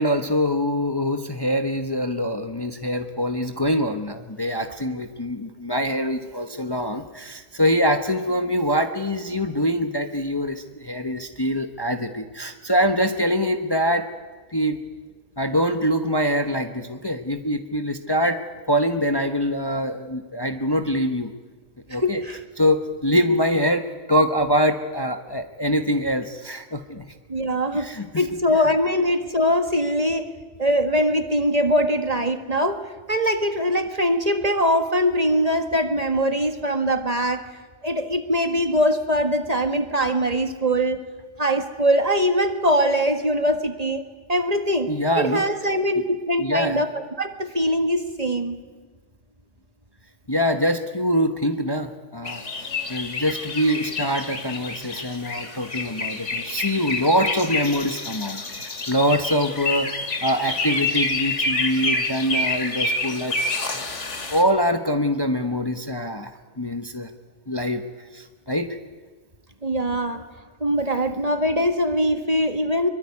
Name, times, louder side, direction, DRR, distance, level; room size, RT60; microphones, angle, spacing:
voice 1, 0.0-14.1 14.5-14.8 15.4-18.4 18.7-21.3 21.9-22.2 22.6-23.8 24.1-27.0 27.7-28.2 44.9-45.4 46.4-46.8 50.3-59.9 60.2-63.4 64.3-67.1 67.5-67.8 68.1-68.8, equal, 20° left, 6 dB, 1.1 m, -24 dB
voice 2, 21.9-22.4 27.3-27.9 28.2-30.3 30.6-32.8 33.1-37.4 37.8-41.0 41.4-44.0 44.3-44.9 45.1-48.6 69.6-70.2 70.6-72.9, equal, 30° right, 7 dB, 1.7 m, -22 dB
sound 1, 52.2-64.4, left 3 dB, 70° left, 2.4 m, -28 dB
23.5 x 23.0 x 9.8 m, 1.3 s
omnidirectional pair, 1.3 m